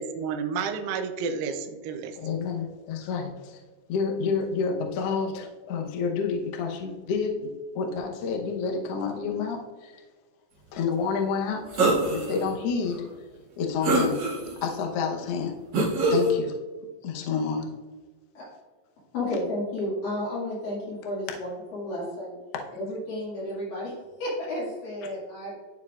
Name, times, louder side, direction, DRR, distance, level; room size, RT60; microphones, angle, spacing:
voice 1, 0.0-2.2, right 5 dB, 80° right, 6 dB, 2.3 m, -31 dB
voice 2, 2.2-3.6 3.9-10.0 10.7-13.3 13.6-14.2 14.6-15.5 16.1-16.5 17.0-17.7, left 5 dB, 85° left, 1 dB, 1.3 m, -29 dB
sound 1, 11.7-12.3 12.9-13.0 13.8-14.6 15.7-16.3, right 2 dB, 50° right, 1.4 m, -23 dB
voice 3, 19.1-22.4 22.8-23.9 24.2-25.5, left 1 dB, 70° left, -7 dB, 3.7 m, -32 dB
12.5 x 4.6 x 2.4 m, 1.3 s
omnidirectional pair, 4.1 m